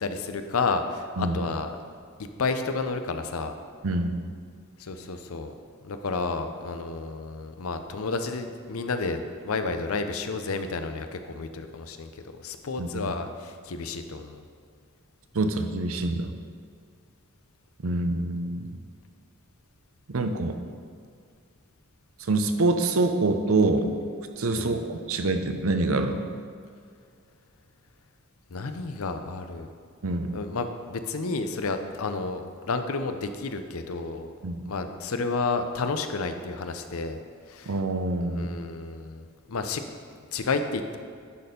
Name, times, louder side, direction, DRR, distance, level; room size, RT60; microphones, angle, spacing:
voice 1, 0.0-1.7 2.4-3.5 4.8-5.5 5.8-12.1 12.4-14.4 24.5-24.8 28.5-29.7 30.3-34.3 34.6-37.2 37.5-37.7 38.3-39.2 39.5-39.8 40.3-41.0, left 3 dB, 90° left, 8 dB, 0.6 m, -31 dB
voice 2, 3.8-4.2 12.8-13.1 15.3-16.3 17.8-18.7 20.1-20.6 22.3-23.9 24.4-26.2 30.0-30.3 34.4-34.6 37.7-38.5, right 2 dB, 75° right, 7 dB, 0.7 m, -26 dB
11.0 x 4.3 x 5.2 m, 2.2 s
head